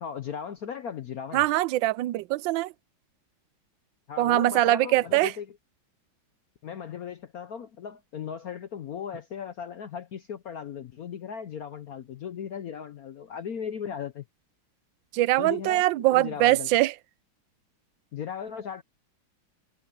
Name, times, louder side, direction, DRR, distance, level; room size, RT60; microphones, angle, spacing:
voice 1, 0.0-1.4 4.1-5.5 6.6-14.2 15.4-16.7 18.1-18.8, left 7 dB, 60° left, 1.0 m, -37 dB
voice 2, 1.3-2.7 4.2-5.3 15.1-16.9, right 16 dB, 75° right, 1.3 m, -23 dB
omnidirectional pair, 2.2 m